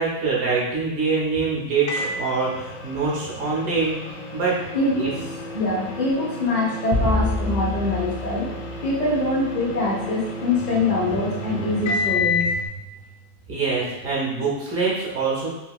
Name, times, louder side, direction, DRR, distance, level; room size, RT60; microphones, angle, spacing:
voice 1, 0.0-4.0 4.3-4.6 5.0-5.2 13.5-15.5, right 4 dB, 60° right, -5 dB, 1.0 m, -24 dB
Microwave oven, 1.9-12.6, left 3 dB, 70° left, 0.8 m, -31 dB
voice 2, 4.7-5.1 5.5-8.5 8.8-12.6, left 2 dB, 90° left, -4 dB, 0.3 m, -24 dB
sound 1, 6.9-9.5, left 2 dB, 20° left, 0.5 m, -27 dB
3.4 x 2.7 x 2.3 m, 0.99 s
omnidirectional pair, 1.8 m